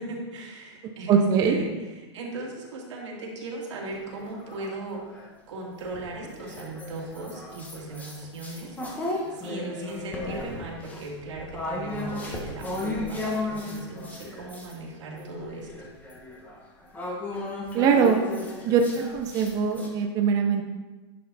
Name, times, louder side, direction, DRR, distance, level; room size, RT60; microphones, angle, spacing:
voice 1, 0.0-1.7 1.9-15.9, right 2 dB, 90° right, -2 dB, 2.5 m, -38 dB
voice 2, 1.1-1.6 17.7-18.2 18.6-18.8 19.1-20.6, right 6 dB, 25° right, 3 dB, 0.6 m, -21 dB
sound 1, 3.9-5.3 5.8-14.7 15.1-19.9, left 2 dB, 10° left, 1.2 m, -35 dB
10.5 x 5.6 x 4.1 m, 1.2 s
supercardioid pair, 160°, 15 cm